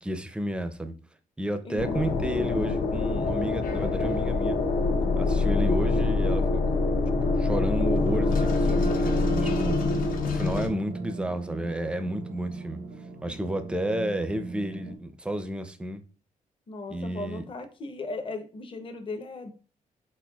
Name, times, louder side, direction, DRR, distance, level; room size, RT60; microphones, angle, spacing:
voice 1, 0.0-0.9 1.4-4.6 5.2-6.6 7.2-10.0 10.2-12.8 13.2-16.0 16.9-17.5, right 1 dB, 5° right, 0.4 m, -31 dB
sound 1, 1.8-10.7, left 3 dB, 80° left, 0.7 m, -25 dB
sound 2, 4.9-15.0, right 3 dB, 90° right, 0.7 m, -39 dB
voice 2, 16.7-19.5, left 3 dB, 40° left, 0.7 m, -37 dB
4.4 x 4.2 x 2.3 m
wide cardioid pair, 135°, 14 cm